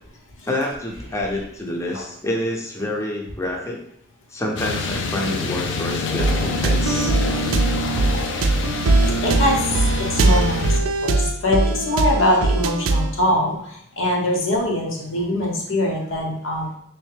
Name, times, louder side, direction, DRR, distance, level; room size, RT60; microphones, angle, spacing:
voice 1, 0.5-3.8 4.3-7.1, left 1 dB, 15° left, -1 dB, 0.5 m, -27 dB
sound 1, 4.6-10.8, left 2 dB, 65° left, 0.4 m, -25 dB
sound 2, 6.2-13.2, right 3 dB, 90° right, 0.4 m, -21 dB
voice 2, 9.2-16.7, left 1 dB, 80° left, -1 dB, 1.0 m, -23 dB
3.5 x 3.1 x 3.3 m, 0.70 s
head